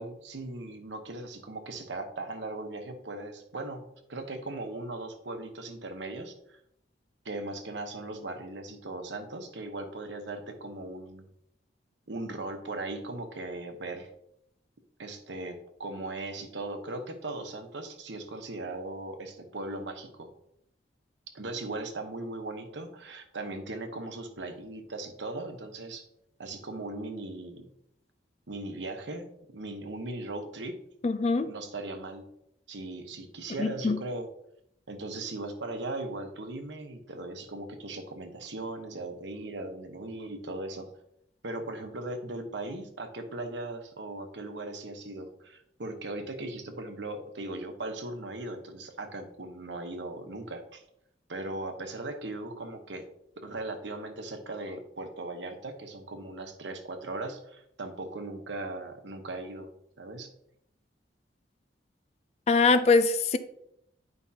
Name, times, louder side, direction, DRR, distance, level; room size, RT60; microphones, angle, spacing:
voice 1, 0.0-6.6 7.2-11.2 12.1-14.1 15.0-20.3 21.3-26.0 26.4-27.7 28.5-30.8 31.4-32.3 32.7-34.3 34.9-40.9 41.4-50.8 51.3-53.1 53.4-59.7 60.0-60.3, right 2 dB, 80° right, 5 dB, 1.0 m, -38 dB
voice 2, 31.0-31.5 33.6-34.0 62.5-63.4, left 4 dB, 35° left, 11 dB, 0.4 m, -23 dB
9.6 x 5.3 x 2.8 m, 0.76 s
head